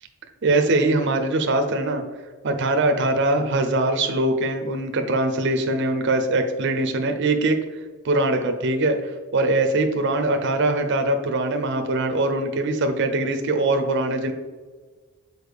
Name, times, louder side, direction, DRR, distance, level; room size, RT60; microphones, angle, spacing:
voice 1, 0.4-2.0 2.4-7.6 8.0-14.3, right 2 dB, 55° right, 5 dB, 0.6 m, -22 dB
6.5 x 4.3 x 3.4 m, 1.4 s
head